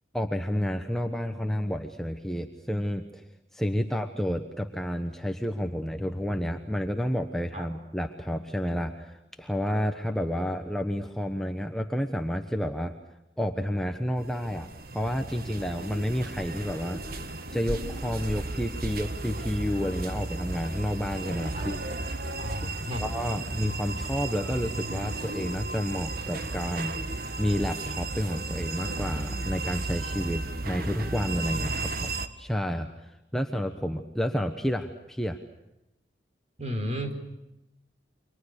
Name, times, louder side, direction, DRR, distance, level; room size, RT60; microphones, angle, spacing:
voice 1, 0.1-3.2 3.5-12.9 13.4-14.7 14.9-21.8 22.1-22.3 23.0-32.1 32.4-35.4, equal, ahead, 4 dB, 1.2 m, -30 dB
sound 1, 14.2-32.3, right 2 dB, 55° right, 1.6 m, -34 dB
voice 2, 22.4-23.0 36.6-37.1, equal, 35° right, 5 dB, 4.2 m, -33 dB
29.5 x 25.0 x 6.6 m, 0.92 s
head